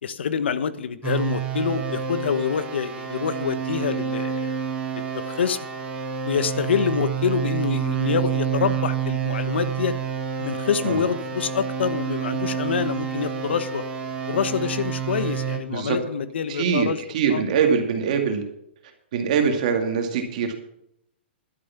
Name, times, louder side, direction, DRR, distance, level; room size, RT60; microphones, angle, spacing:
voice 1, 0.0-4.6 4.9-5.6 6.2-10.0 10.4-13.8 14.3-17.0 17.3-17.4, left 7 dB, 75° left, 14 dB, 1.1 m, -26 dB
sound 1, 1.0-15.6, right 7 dB, 15° right, 1.5 m, -28 dB
voice 2, 16.5-16.9 17.1-18.4 19.1-20.5, right 6 dB, 40° right, 4 dB, 2.3 m, -23 dB
12.0 x 10.0 x 5.9 m, 0.77 s
hypercardioid pair, 175°, 6 cm